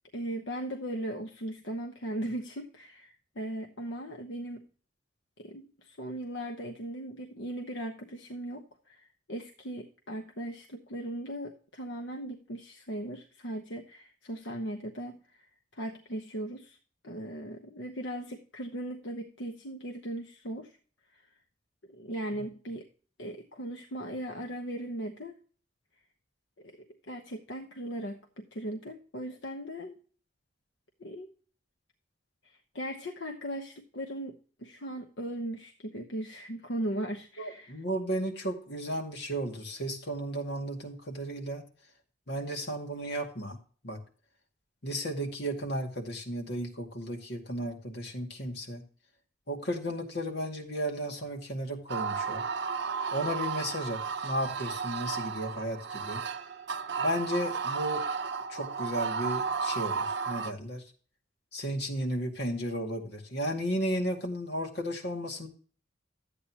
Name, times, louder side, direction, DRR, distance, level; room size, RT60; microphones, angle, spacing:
voice 1, 0.1-4.7 5.4-15.5 15.7-16.8 17.0-20.8 21.1-21.3 21.9-22.9 23.2-25.4 26.6-30.0 31.0-31.3 32.4-37.8, right 1 dB, 80° left, 5 dB, 1.0 m, -38 dB
voice 2, 37.4-41.6 42.3-43.6 43.8-44.0 44.8-48.8 49.5-52.4 53.1-56.2 57.0-58.0 58.5-60.8 61.5-65.5, equal, 60° left, 1 dB, 2.2 m, -34 dB
sound 1, 51.9-60.5, right 5 dB, 65° right, 0.7 m, -33 dB
12.5 x 8.5 x 2.9 m, 0.42 s
head